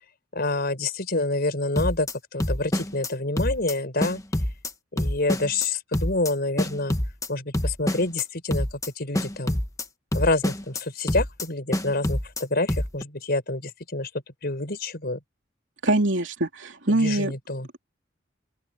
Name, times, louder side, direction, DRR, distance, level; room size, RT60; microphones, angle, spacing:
voice 1, 0.3-4.2 4.9-7.0 7.3-9.6 10.1-14.1 14.4-15.2 16.9-17.7, left 2 dB, 55° left, 5.2 m, -27 dB
sound 1, 1.8-2.1 2.4-3.1 3.4-3.7 4.0-4.7 5.0-5.7 5.9-6.3 6.6-7.3 7.5-8.2 8.5-8.9 9.1-9.8 10.1-10.8 11.1-11.5 11.7-12.4 12.7-13.0, left 1 dB, 15° left, 1.3 m, -26 dB
voice 2, 15.8-17.3, right 2 dB, 70° right, 3.3 m, -23 dB
open air
head